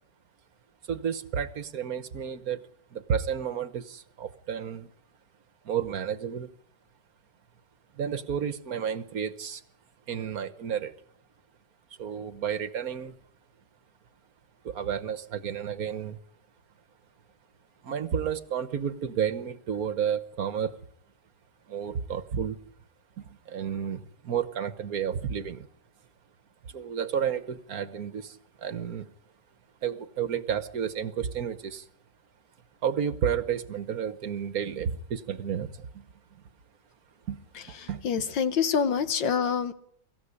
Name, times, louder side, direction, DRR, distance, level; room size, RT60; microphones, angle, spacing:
voice 1, 0.9-2.6 2.9-4.9 5.6-6.5 7.9-9.6 10.1-10.9 12.0-13.1 14.6-16.2 17.8-20.8 21.7-22.6 23.2-25.7 26.7-29.1 29.8-31.9 32.8-36.1 37.3-37.4 37.7-38.0, right 8 dB, 55° right, 13 dB, 1.4 m, -31 dB
voice 2, 37.5-39.7, left 6 dB, 85° left, 11 dB, 2.0 m, -27 dB
24.5 x 15.0 x 9.9 m, 0.71 s
omnidirectional pair, 1.9 m